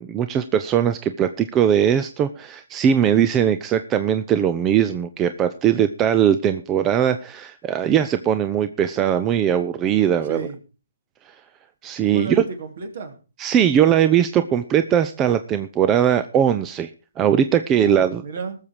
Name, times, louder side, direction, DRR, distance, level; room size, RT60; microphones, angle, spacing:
voice 1, 0.0-10.4 11.8-12.4 13.4-16.9 17.2-18.2, right 9 dB, 20° right, 10 dB, 0.6 m, -20 dB
voice 2, 10.2-10.6 12.1-13.2 17.7-18.6, right 3 dB, 55° right, 6 dB, 3.3 m, -32 dB
19.0 x 7.2 x 4.7 m, 0.34 s
hypercardioid pair, 150°, 0 cm